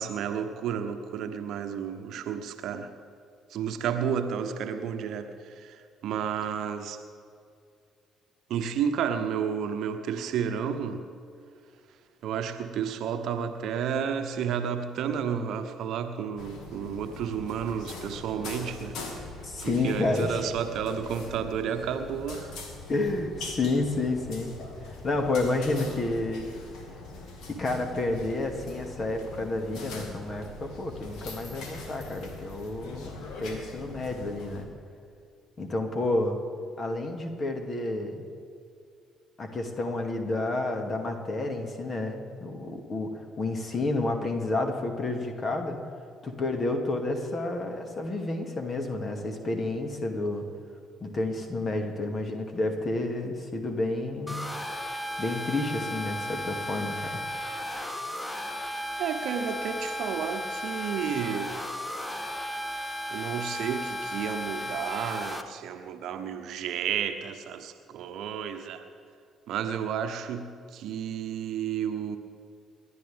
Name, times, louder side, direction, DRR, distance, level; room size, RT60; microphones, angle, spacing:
voice 1, 0.0-2.9 3.5-5.8 6.0-7.0 8.5-11.0 12.2-19.0 19.6-22.5 59.0-61.6 63.1-68.8 69.5-72.2, right 8 dB, 55° right, 8 dB, 1.1 m, -31 dB
sound 1, 16.4-34.6, left 3 dB, 60° left, 2.2 m, -42 dB
voice 2, 19.4-20.5 22.9-24.6 24.8-26.5 27.4-34.7 35.6-36.4 36.8-38.2 39.4-45.8 46.2-50.4 51.0-54.5 55.2-57.2, left 2 dB, 35° left, 4 dB, 2.3 m, -30 dB
sound 2, 54.3-65.4, left 1 dB, 15° left, 1.3 m, -35 dB
29.5 x 11.5 x 3.6 m, 2.3 s
figure-of-eight pair, 45°, 0 cm